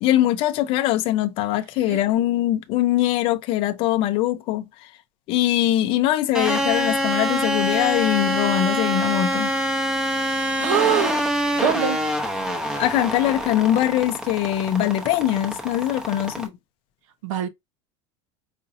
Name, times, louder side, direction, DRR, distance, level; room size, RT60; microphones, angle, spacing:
voice 1, 0.0-4.7 5.3-9.5 12.8-16.5, left 13 dB, 35° left, 0.4 m, -22 dB
sound 1, 6.3-16.5, equal, 5° right, 0.7 m, -25 dB
voice 2, 10.6-11.2 11.6-12.0 17.2-17.5, right 9 dB, 85° right, 0.9 m, -23 dB
4.9 x 2.7 x 2.5 m
cardioid pair, 170°, 16 cm